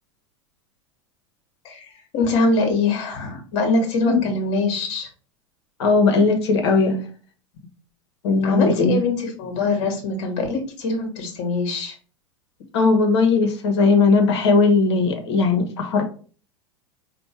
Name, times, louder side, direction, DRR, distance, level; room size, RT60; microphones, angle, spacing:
voice 1, 2.1-5.1 8.4-11.9, left 3 dB, 50° left, 3 dB, 1.3 m, -23 dB
voice 2, 5.8-7.0 8.2-9.0 12.7-16.0, left 4 dB, 65° left, 5 dB, 1.1 m, -18 dB
4.4 x 2.5 x 4.3 m, 0.41 s
figure-of-eight pair, 85°, 15 cm